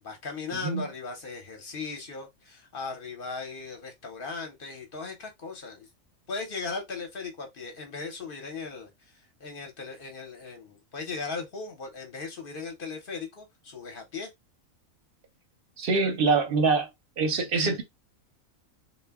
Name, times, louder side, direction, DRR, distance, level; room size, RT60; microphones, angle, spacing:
voice 1, 0.0-5.9 6.3-14.3 15.9-16.1, left 4 dB, 50° left, 0.7 m, -38 dB
voice 2, 15.8-16.9 17.2-17.8, right 4 dB, 55° right, 0.7 m, -24 dB
2.2 x 2.1 x 3.4 m
omnidirectional pair, 1.4 m